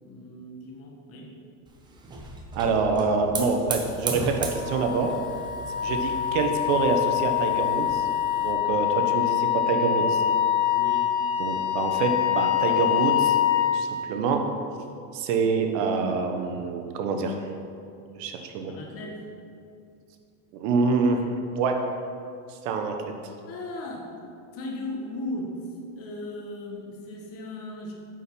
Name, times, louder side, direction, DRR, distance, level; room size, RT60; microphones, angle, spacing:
voice 1, 0.0-1.3 10.7-11.1 18.7-19.2 23.5-24.1 24.5-25.6 26.0-27.9, left 1 dB, 35° left, -1 dB, 1.3 m, -37 dB
Hiss / Fire, 1.7-8.5, right 3 dB, 10° right, 0.5 m, -37 dB
voice 2, 2.5-5.2 5.8-8.0 8.4-10.2 11.4-13.4 13.7-14.4 15.1-17.4 18.1-18.7 20.5-21.2 21.6-21.8 22.6-23.1, right 4 dB, 60° right, 4 dB, 1.0 m, -26 dB
Wind instrument woodwind instrument, 4.4-13.8, left 11 dB, 65° left, 1.1 m, -25 dB
8.9 x 4.4 x 5.3 m, 2.4 s
supercardioid pair, 155°, 42 cm